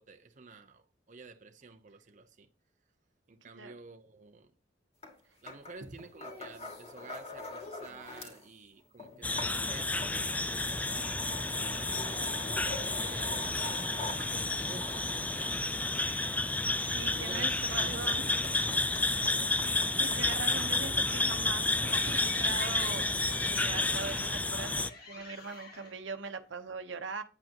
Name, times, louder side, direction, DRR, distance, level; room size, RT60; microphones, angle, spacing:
voice 1, 0.0-2.5 3.3-4.5 5.4-12.1 12.8-16.5 16.9-19.5, right 4 dB, 45° right, 0.7 m, -51 dB
voice 2, 3.4-3.7 16.8-18.2 19.9-23.1 23.4-27.2, right 4 dB, 80° right, 1.0 m, -41 dB
sound 1, 5.0-5.2 5.5-8.5 8.8-20.9 21.6-24.4, left 2 dB, 35° left, 2.2 m, -46 dB
sound 2, 9.2-24.9, left 2 dB, 10° left, 0.3 m, -31 dB
sound 3, 21.2-26.7, left 4 dB, 55° left, 2.0 m, -47 dB
8.9 x 8.0 x 2.9 m
head